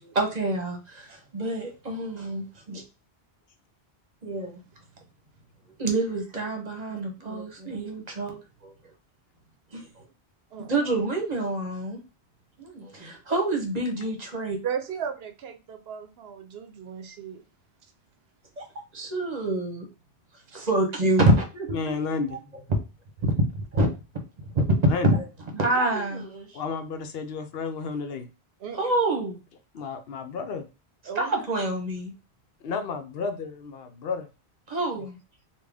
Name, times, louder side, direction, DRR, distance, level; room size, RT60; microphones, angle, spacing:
voice 1, 0.1-2.8 4.2-4.6 5.8-8.7 9.7-9.9 10.7-12.0 12.6-14.6 18.6-18.7 18.9-19.9 20.5-22.0 23.2-23.5 23.7-23.9 24.4-24.6 25.0-25.3 25.5-26.6 28.7-29.4 31.1-32.1 34.7-35.2, right 2 dB, 40° right, 1.0 m, -27 dB
voice 2, 10.5-11.0 14.6-17.4 28.6-28.8 31.1-31.5, right 7 dB, 70° right, 0.8 m, -36 dB
voice 3, 21.7-22.4 24.9-25.1 26.5-28.3 29.7-30.7 32.6-34.3 34.8-35.1, left 4 dB, 70° left, 0.8 m, -31 dB
3.7 x 2.3 x 3.4 m
omnidirectional pair, 1.1 m